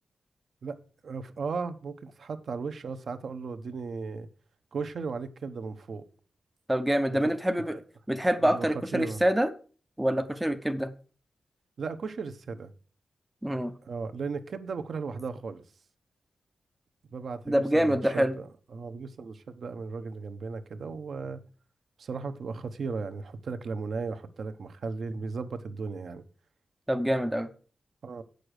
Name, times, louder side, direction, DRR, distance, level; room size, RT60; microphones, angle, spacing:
voice 1, 1.0-4.3 4.7-6.0 7.2-7.3 7.7-7.8 8.4-8.7 8.9-9.2 11.8-12.7 13.8-15.6 17.1-21.4 22.0-26.2 28.0-28.2, right 4 dB, 55° right, 0.9 m, -36 dB
voice 2, 6.7-7.7 8.1-9.5 10.0-10.9 13.4-13.7 17.5-18.3 26.9-27.5, equal, 5° right, 0.6 m, -26 dB
8.9 x 6.6 x 6.5 m
wide cardioid pair, 175°, 0 cm